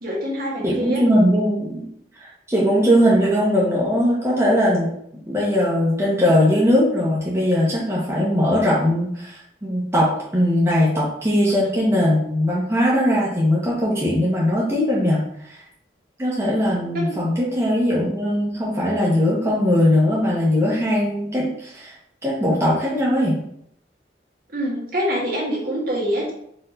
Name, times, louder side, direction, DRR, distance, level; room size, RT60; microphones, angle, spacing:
voice 1, 0.0-1.0 16.9-17.1 24.5-26.3, equal, 55° right, -3 dB, 1.4 m, -25 dB
voice 2, 0.6-1.8 2.2-4.9 5.3-15.2 15.5-15.6 16.2-21.9 22.2-23.4, equal, 15° right, -6 dB, 0.8 m, -20 dB
4.4 x 2.8 x 3.8 m, 0.70 s
head